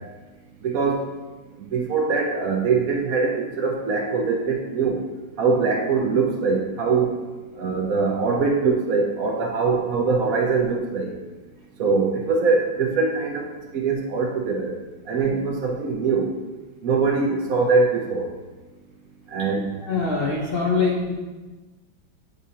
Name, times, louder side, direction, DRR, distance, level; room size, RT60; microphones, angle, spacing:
voice 1, 0.6-1.0 1.6-5.0 5.4-7.1 7.6-11.1 11.8-13.5 13.7-14.7 15.1-16.3 16.8-18.3 19.3-19.7, right 4 dB, 60° right, 0 dB, 1.0 m, -22 dB
voice 2, 19.8-21.1, left 4 dB, 55° left, -3 dB, 0.6 m, -23 dB
9.4 x 4.3 x 2.8 m, 1.2 s
omnidirectional pair, 2.1 m